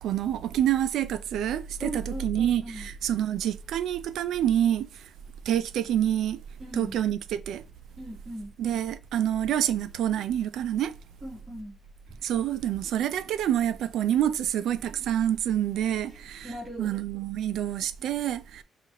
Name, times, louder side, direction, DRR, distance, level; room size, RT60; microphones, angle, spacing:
voice 1, 0.0-5.1 5.5-6.4 6.7-7.6 8.6-10.9 12.2-18.6, right 10 dB, 80° right, 0.4 m, -27 dB
voice 2, 1.8-2.9 6.6-7.0 8.0-8.5 11.2-11.8 12.1-12.2 16.1-16.9, right 1 dB, 15° right, 2.0 m, -39 dB
5.7 x 2.5 x 2.8 m
cardioid pair, 90°, 0 cm